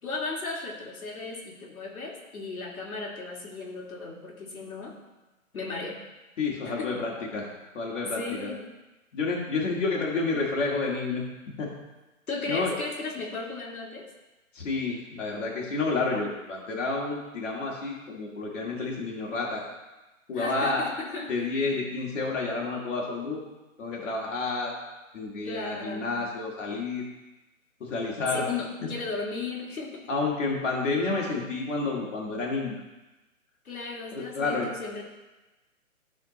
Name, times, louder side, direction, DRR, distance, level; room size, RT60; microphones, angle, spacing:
voice 1, 0.0-4.9 5.5-6.0 6.6-7.0 8.1-8.7 12.3-14.1 20.3-21.5 25.4-26.2 28.3-30.1 33.6-35.0, left 3 dB, 90° left, -2 dB, 2.3 m, -35 dB
voice 2, 6.4-7.5 7.7-8.5 9.1-11.2 11.6-11.7 12.5-12.7 14.5-19.6 20.3-20.9 21.3-23.4 23.8-24.7 25.1-27.0 27.8-28.4 28.8-28.9 30.1-32.8 34.1-34.7, left 3 dB, 60° left, -3 dB, 2.1 m, -30 dB
12.5 x 4.3 x 4.1 m, 1.1 s
hypercardioid pair, 165°, 42 cm